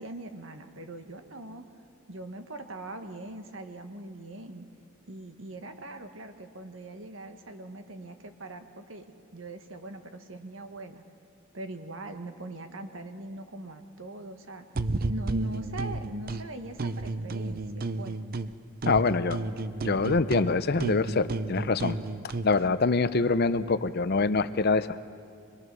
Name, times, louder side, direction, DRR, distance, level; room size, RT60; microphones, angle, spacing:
voice 1, 0.0-1.6 2.1-4.6 5.1-9.1 9.3-11.0 11.5-14.6 15.1-18.2, right 1 dB, 65° right, 6 dB, 1.6 m, -41 dB
sound 1, 14.7-16.4 16.8-18.5 18.8-22.5, right 2 dB, 45° right, 0.6 m, -32 dB
voice 2, 18.8-19.4 19.8-22.0 22.4-25.0, left 4 dB, 50° left, 13 dB, 0.6 m, -25 dB
25.0 x 21.5 x 6.2 m, 2.3 s
head